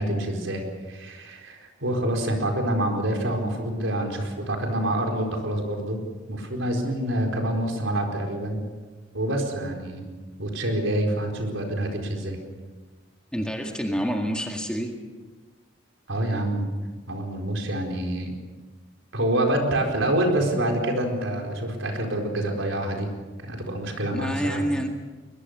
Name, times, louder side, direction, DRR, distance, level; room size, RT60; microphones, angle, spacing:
voice 1, 0.0-6.0 6.3-8.6 9.1-10.0 10.4-12.4 16.1-16.7 17.1-18.3 19.1-23.1 23.4-24.6, right 1 dB, 75° right, 2 dB, 4.5 m, -27 dB
voice 2, 13.3-15.0 24.1-24.9, equal, 5° left, 2 dB, 1.9 m, -28 dB
22.0 x 21.5 x 6.7 m, 1.4 s
head